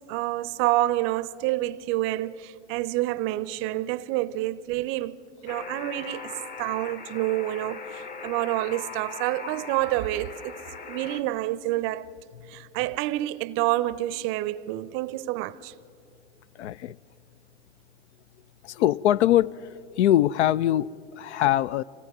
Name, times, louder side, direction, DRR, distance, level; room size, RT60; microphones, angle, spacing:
voice 1, 0.1-6.3 6.6-10.6 10.9-12.1 12.5-15.7, right 16 dB, 35° right, 0.5 m, -28 dB
Alarm, 5.5-11.2, left 4 dB, 25° left, 1.0 m, -40 dB
voice 2, 16.6-17.0 18.6-19.7 20.0-21.8, left 12 dB, 75° left, 0.5 m, -22 dB
26.0 x 17.0 x 6.0 m
hypercardioid pair, 115°, 34 cm